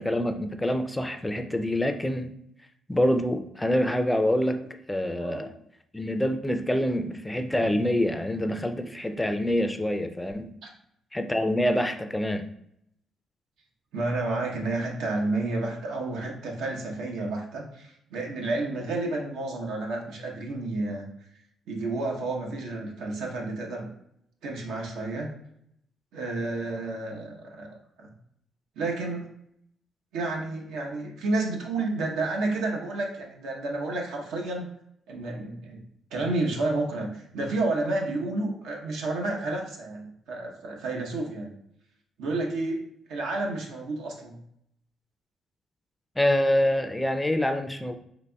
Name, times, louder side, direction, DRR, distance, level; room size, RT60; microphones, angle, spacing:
voice 1, 0.0-2.3 2.9-5.5 5.9-10.5 11.1-12.5 46.2-47.9, left 1 dB, 10° left, 8 dB, 0.3 m, -26 dB
voice 2, 13.9-21.1 21.7-23.9 24.4-25.3 26.1-27.7 28.0-28.1 28.8-29.3 30.1-34.7 35.1-35.8 36.1-41.5 42.2-42.8 43.1-44.4, right 2 dB, 90° right, 0 dB, 0.8 m, -30 dB
4.0 x 2.9 x 2.2 m, 0.73 s
cardioid pair, 90°, 0 cm